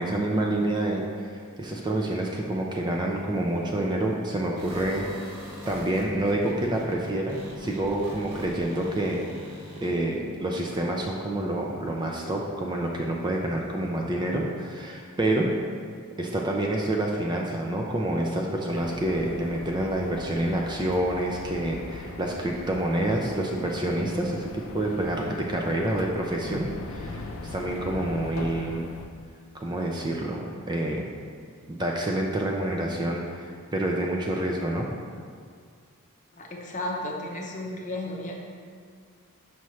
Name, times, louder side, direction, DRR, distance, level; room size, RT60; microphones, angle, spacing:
voice 1, 0.0-5.1 5.3-9.3 9.8-15.5 16.2-28.9 29.5-31.1 31.7-34.9, right 1 dB, 20° right, 0 dB, 0.4 m, -28 dB
sound 1, 4.6-9.9, equal, 85° right, 1.2 m, -42 dB
sound 2, 18.7-29.1, left 2 dB, 65° left, 0.5 m, -40 dB
voice 2, 36.4-38.4, left 1 dB, 35° left, -1 dB, 0.7 m, -33 dB
6.1 x 5.6 x 3.1 m, 2.1 s
head